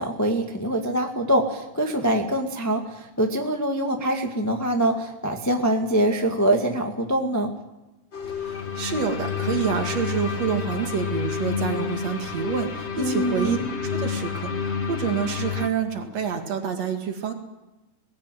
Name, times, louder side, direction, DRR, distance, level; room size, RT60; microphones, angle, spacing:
voice 1, 0.0-7.5 13.0-13.7, right 1 dB, 10° left, 3 dB, 1.1 m, -24 dB
sound 1, 8.1-15.7, left 7 dB, 45° left, 0.8 m, -29 dB
voice 2, 8.4-17.3, right 7 dB, 60° right, 4 dB, 3.1 m, -28 dB
20.0 x 16.5 x 9.2 m, 1.0 s
omnidirectional pair, 3.6 m